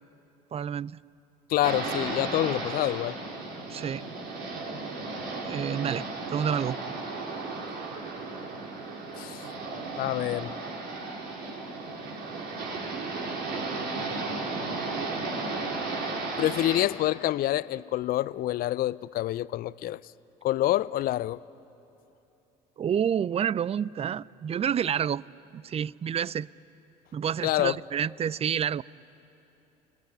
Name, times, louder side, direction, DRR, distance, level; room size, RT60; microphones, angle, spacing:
voice 1, 0.5-0.9 3.7-4.0 5.4-6.8 22.8-25.2 25.5-26.5 27.1-28.8, right 8 dB, 30° right, 0.5 m, -29 dB
voice 2, 1.5-3.2 9.2-9.5 10.0-10.5 16.4-20.0 20.4-21.4 27.4-27.7, left 14 dB, 45° left, 0.5 m, -27 dB
sound 1, 1.6-16.9, right 3 dB, 60° right, 3.5 m, -34 dB
29.5 x 18.5 x 8.9 m
hypercardioid pair, 60°, 21 cm